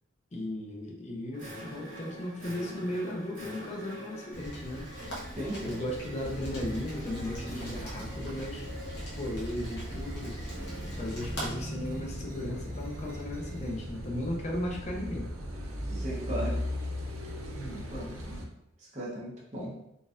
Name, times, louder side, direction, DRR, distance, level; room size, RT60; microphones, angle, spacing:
voice 1, 0.3-4.9 5.6-8.7 9.2-10.5 11.0-15.3, left 1 dB, 35° left, 0 dB, 0.5 m, -36 dB
sound 1, 1.3-13.9, equal, 65° right, 1.5 m, -45 dB
Rain, 4.3-11.5, right 1 dB, 60° left, 0.9 m, -42 dB
voice 2, 5.4-5.8 15.9-16.6 17.5-18.4 18.9-19.7, right 1 dB, 35° right, -4 dB, 0.9 m, -37 dB
Car passing by / Idling / Accelerating revving vroom, 6.2-18.4, equal, 90° right, 0.6 m, -39 dB
3.9 x 2.4 x 2.5 m, 0.82 s
head